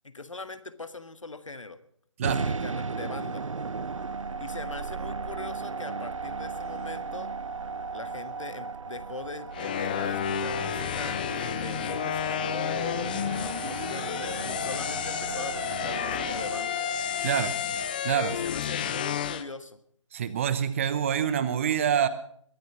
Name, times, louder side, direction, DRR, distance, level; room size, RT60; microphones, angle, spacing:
voice 1, 0.0-1.8 2.4-3.4 4.4-7.3 7.9-16.8 18.3-19.8, left 3 dB, 75° left, 11 dB, 1.6 m, -41 dB
sound 1, 2.2-18.4, right 4 dB, 75° right, 0.6 m, -36 dB
sound 2, 9.5-19.4, left 9 dB, 15° left, 0.5 m, -31 dB
voice 2, 17.2-17.6 18.0-18.3 20.1-22.1, right 8 dB, 25° right, 14 dB, 0.9 m, -26 dB
22.0 x 9.4 x 5.9 m, 0.64 s
figure-of-eight pair, 150°, 16 cm